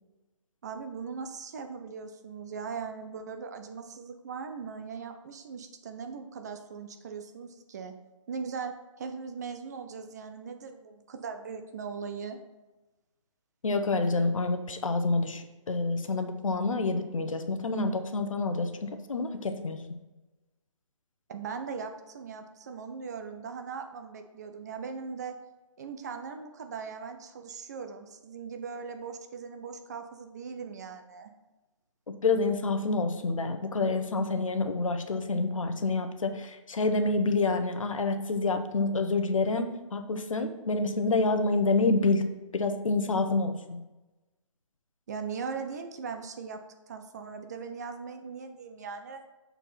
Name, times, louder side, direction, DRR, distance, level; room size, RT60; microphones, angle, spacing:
voice 1, 0.6-8.0 8.3-12.4 21.3-25.4 25.8-31.3 45.1-46.6 46.9-49.2, right 5 dB, 30° right, 6 dB, 0.5 m, -39 dB
voice 2, 13.6-19.8 32.1-42.2 42.5-43.8, left 3 dB, 75° left, 7 dB, 0.9 m, -28 dB
6.9 x 4.5 x 4.2 m, 1.1 s
figure-of-eight pair, 150°, 17 cm